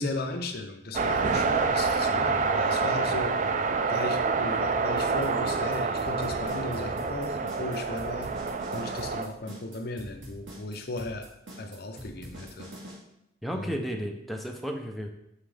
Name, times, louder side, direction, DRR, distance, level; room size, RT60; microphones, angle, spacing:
voice 1, 0.0-3.3 3.9-8.3 8.7-11.3 11.6-12.7 13.5-13.7, left 2 dB, 55° left, 5 dB, 0.7 m, -36 dB
sound 1, 0.9-9.3, right 4 dB, 40° right, 0.4 m, -27 dB
sound 2, 5.0-13.0, equal, 85° right, 1.7 m, -44 dB
voice 2, 13.4-15.1, equal, ahead, 2 dB, 0.6 m, -33 dB
6.1 x 5.6 x 3.4 m, 0.80 s
head